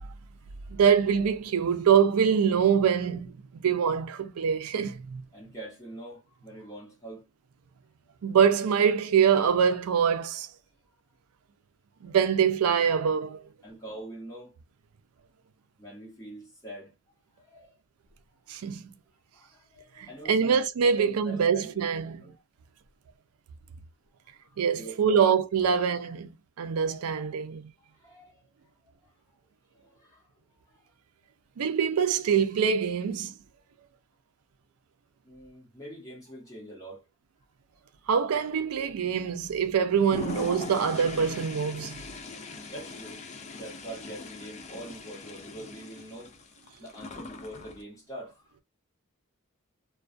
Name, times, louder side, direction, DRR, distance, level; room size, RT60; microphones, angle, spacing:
voice 1, 0.7-5.2 8.2-10.5 12.0-13.4 18.5-18.8 20.0-22.2 24.6-26.3 26.6-27.6 31.6-33.3 38.1-42.0, right 7 dB, 85° right, 0.4 m, -24 dB
voice 2, 5.3-7.3 12.0-12.2 13.6-14.5 15.8-16.9 17.4-17.7 19.3-20.6 21.0-21.8 22.1-22.3 24.4-25.4 25.7-25.8 26.9-27.0 28.0-28.4 29.0-29.1 29.7-30.8 35.2-37.1 39.1-39.3 42.7-43.3 43.6-46.4 46.8-48.6, right 1 dB, 15° left, 1.0 m, -44 dB
Toilet flush, 39.9-47.8, left 3 dB, 30° left, 0.4 m, -41 dB
2.3 x 2.2 x 2.5 m
head